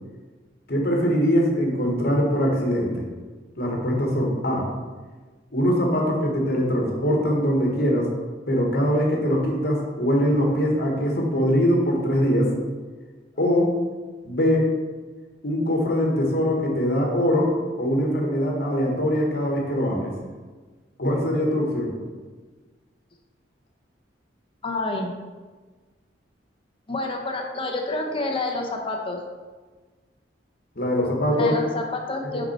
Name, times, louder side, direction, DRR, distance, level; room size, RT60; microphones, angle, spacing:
voice 1, 0.7-3.0 3.6-4.7 5.5-8.1 8.5-12.5 13.4-13.8 14.2-14.7 15.4-20.1 21.0-21.9 30.7-31.7 32.3-32.5, equal, 55° left, 0 dB, 1.4 m, -22 dB
voice 2, 24.6-25.1 26.9-29.2 31.3-32.4, left 2 dB, 30° left, 2 dB, 0.8 m, -28 dB
5.9 x 5.4 x 4.3 m, 1.3 s
head